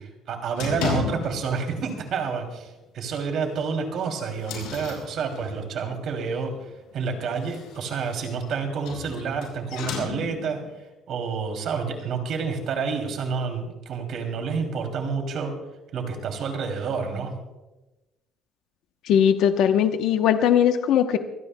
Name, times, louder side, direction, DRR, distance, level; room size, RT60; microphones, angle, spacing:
voice 1, 0.0-10.6 11.1-15.5 15.9-17.3, right 5 dB, 50° right, 4 dB, 2.7 m, -29 dB
sound 1, 0.6-1.6 1.9-2.2 2.6-2.7 3.1-3.2 3.8-5.8 7.2-10.6, left 7 dB, 90° left, 5.6 m, -34 dB
voice 2, 19.0-21.2, left 9 dB, 60° left, 7 dB, 0.8 m, -19 dB
25.0 x 17.0 x 2.2 m, 1.0 s
cardioid pair, 175°, 0 cm